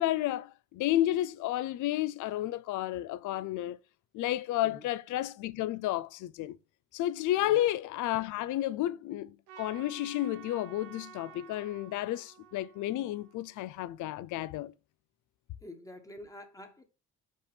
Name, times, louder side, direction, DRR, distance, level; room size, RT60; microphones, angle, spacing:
voice 1, 0.0-3.8 4.1-6.6 6.9-14.7, left 14 dB, 80° left, 0.5 m, -31 dB
Trumpet, 9.5-13.8, right 10 dB, 85° right, 1.1 m, -52 dB
voice 2, 15.6-16.8, left 1 dB, 10° left, 1.2 m, -48 dB
5.4 x 5.0 x 3.4 m
cardioid pair, 90°, 30 cm